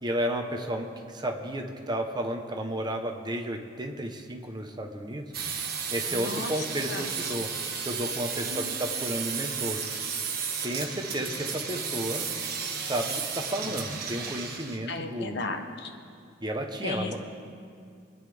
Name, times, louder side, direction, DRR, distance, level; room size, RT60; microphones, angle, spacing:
voice 1, 0.0-5.3 5.9-7.5 7.8-9.8 10.6-12.3 12.8-15.4 16.4-17.2, right 1 dB, 25° right, 3 dB, 1.0 m, -32 dB
sound 1, 5.3-14.8, right 6 dB, 55° right, 1.4 m, -33 dB
voice 2, 6.1-7.1 8.4-8.7 14.9-15.9 16.8-17.2, left 3 dB, 65° left, 5 dB, 1.1 m, -35 dB
27.0 x 9.6 x 3.6 m, 2.3 s
head